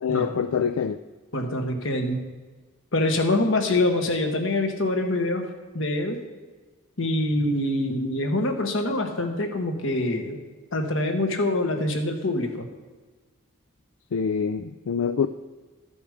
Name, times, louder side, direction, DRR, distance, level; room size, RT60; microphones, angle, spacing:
voice 1, 0.0-1.0 14.1-15.3, left 6 dB, 90° left, 11 dB, 0.4 m, -25 dB
voice 2, 1.3-2.2 2.9-5.5 5.7-6.2 7.0-10.4 10.7-12.7, left 1 dB, 70° left, 4 dB, 1.3 m, -25 dB
13.0 x 7.1 x 5.0 m, 1.3 s
head